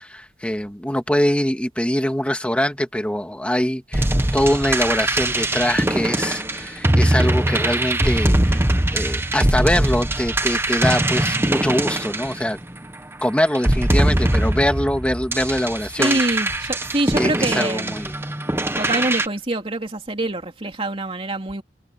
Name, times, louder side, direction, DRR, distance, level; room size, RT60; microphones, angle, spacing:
voice 1, 0.0-4.1 4.3-8.6 8.9-12.6 13.2-16.2 17.2-18.1, equal, 5° left, 2.0 m, -23 dB
sound 1, 3.9-12.9 13.5-19.3, right 1 dB, 15° right, 1.0 m, -21 dB
voice 2, 16.0-18.0 18.8-21.6, right 2 dB, 30° right, 2.9 m, -25 dB
head